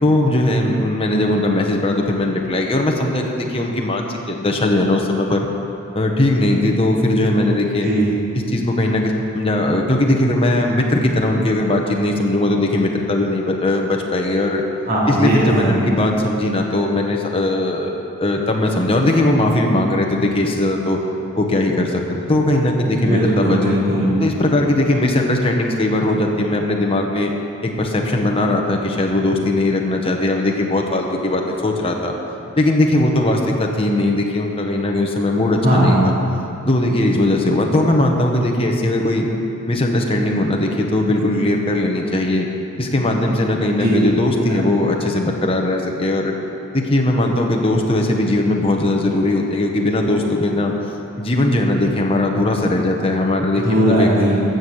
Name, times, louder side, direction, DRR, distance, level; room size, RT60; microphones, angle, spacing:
voice 1, 0.0-5.5 5.9-7.9 8.5-14.6 15.1-21.0 21.4-23.6 24.2-27.3 27.6-32.1 32.6-36.1 36.6-39.3 39.7-42.5 42.8-46.3 46.7-50.7 51.2-54.1, left 1 dB, 25° left, 1 dB, 1.2 m, -19 dB
voice 2, 14.9-15.7 23.0-24.1 35.6-36.1 43.8-44.0 53.6-54.4, right 1 dB, 45° right, -8 dB, 2.9 m, -17 dB
14.5 x 7.2 x 6.5 m, 2.8 s
head